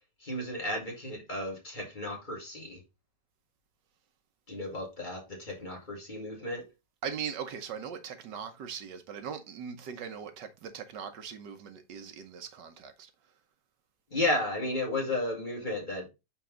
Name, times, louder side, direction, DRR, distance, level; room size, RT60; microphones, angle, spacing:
voice 1, 0.2-2.8 4.5-6.6 14.1-16.1, left 1 dB, 25° left, 1.9 m, -33 dB
voice 2, 7.0-13.1, right 7 dB, 75° right, 1.5 m, -40 dB
5.7 x 5.0 x 3.7 m
omnidirectional pair, 1.9 m